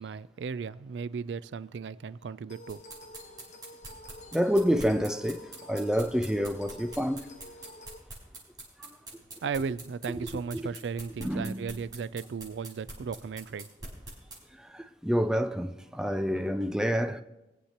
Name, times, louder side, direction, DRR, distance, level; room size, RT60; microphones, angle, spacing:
voice 1, 0.0-2.8 9.4-13.7, right 5 dB, 85° right, 0.4 m, -36 dB
sound 1, 2.5-8.0, left 1 dB, 40° left, 1.1 m, -49 dB
sound 2, 2.7-14.4, right 2 dB, 25° right, 5.0 m, -44 dB
voice 2, 4.3-7.5 8.8-9.0 10.1-10.2 10.5-10.6 11.2-11.7 14.6-17.2, equal, 5° right, 0.4 m, -28 dB
23.5 x 8.1 x 2.9 m
head